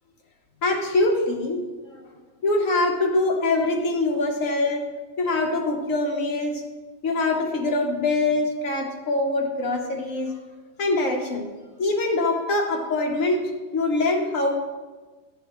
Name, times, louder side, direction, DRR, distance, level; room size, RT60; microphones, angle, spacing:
voice 1, 0.6-1.9 2.4-4.9 5.2-6.6 7.0-10.3 10.8-11.5 11.8-14.5, left 2 dB, 75° left, 1 dB, 1.6 m, -24 dB
12.0 x 6.9 x 3.1 m, 1.3 s
omnidirectional pair, 1.4 m